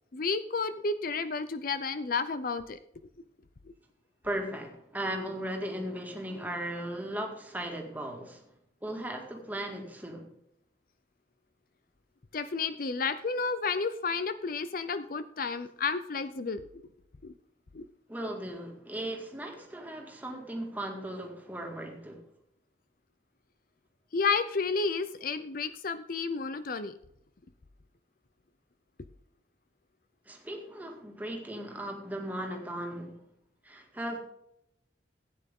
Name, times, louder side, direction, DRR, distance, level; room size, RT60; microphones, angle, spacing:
voice 1, 0.1-2.8 12.3-16.8 17.2-17.3 17.7-17.9 24.1-27.0, left 4 dB, 50° left, 12 dB, 0.6 m, -31 dB
voice 2, 4.2-8.5 8.8-10.3 18.1-22.2 30.3-33.2 33.6-34.2, right 1 dB, 10° right, 2 dB, 2.1 m, -37 dB
15.5 x 9.1 x 3.7 m, 0.78 s
head